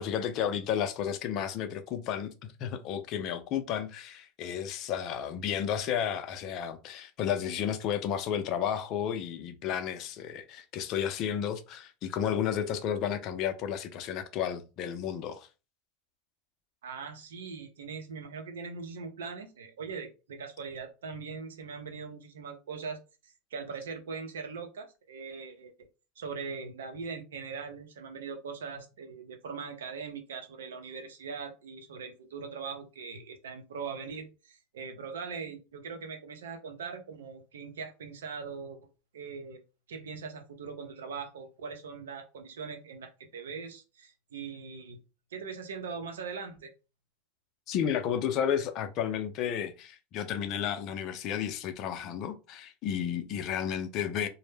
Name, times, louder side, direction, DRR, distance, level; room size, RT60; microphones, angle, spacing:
voice 1, 0.0-15.5 47.7-54.3, left 8 dB, 50° left, 0.4 m, -32 dB
voice 2, 16.8-25.7 26.2-38.8 39.1-39.6 39.9-45.0 45.3-46.7, right 5 dB, 85° right, 0.6 m, -41 dB
2.1 x 2.0 x 3.2 m
hypercardioid pair, 100°, 0 cm